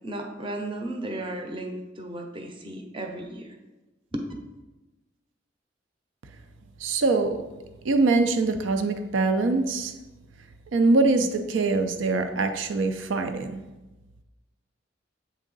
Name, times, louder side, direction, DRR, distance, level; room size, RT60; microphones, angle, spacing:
voice 1, 0.0-3.6 4.1-4.3, right 1 dB, 25° right, 3 dB, 0.6 m, -34 dB
voice 2, 6.8-7.4 7.8-9.9 10.7-13.6, right 3 dB, 75° right, 7 dB, 0.5 m, -23 dB
8.2 x 3.6 x 3.9 m, 1.1 s
head